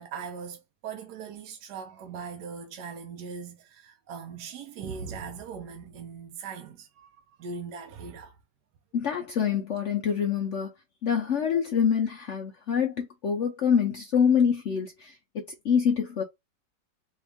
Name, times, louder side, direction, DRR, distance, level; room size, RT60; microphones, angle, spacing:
voice 1, 0.0-8.4, right 6 dB, 75° right, 1.3 m, -40 dB
voice 2, 8.9-10.7 11.0-16.2, left 7 dB, 65° left, 0.7 m, -26 dB
4.3 x 2.4 x 3.4 m
omnidirectional pair, 1.9 m